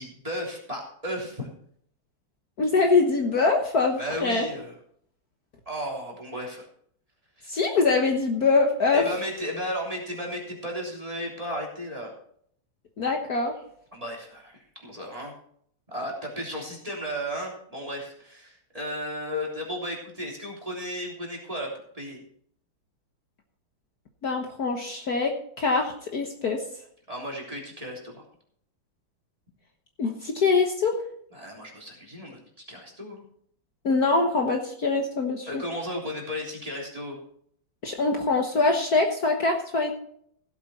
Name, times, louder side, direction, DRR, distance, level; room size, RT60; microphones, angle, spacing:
voice 1, 0.0-1.5 4.0-4.7 5.6-6.7 7.4-7.6 8.9-12.1 13.9-15.3 15.9-22.2 27.1-28.2 31.3-32.4 32.7-33.2 35.5-37.2, equal, 15° right, -2 dB, 3.4 m, -34 dB
voice 2, 2.6-4.5 7.5-9.0 13.0-13.5 24.2-25.3 25.6-26.6 30.0-31.0 33.8-35.6 37.8-39.9, left 3 dB, 55° left, 3 dB, 1.7 m, -23 dB
16.5 x 8.1 x 4.3 m, 0.64 s
omnidirectional pair, 2.2 m